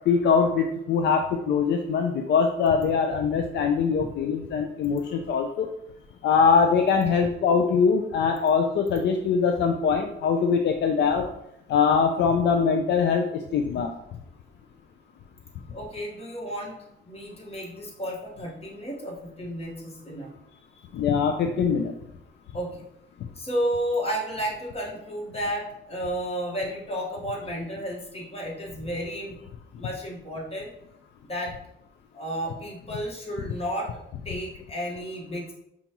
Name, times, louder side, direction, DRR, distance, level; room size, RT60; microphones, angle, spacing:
voice 1, 0.1-5.7 6.2-11.3 11.7-13.9 20.9-21.9, left 6 dB, 65° left, 4 dB, 0.4 m, -22 dB
voice 2, 15.7-20.9 22.5-22.8 23.3-29.3 29.8-30.7 31.2-31.6 32.1-33.9 34.2-35.5, equal, 30° left, -3 dB, 1.4 m, -32 dB
5.2 x 2.4 x 2.9 m, 0.80 s
cardioid pair, 90°, 20 cm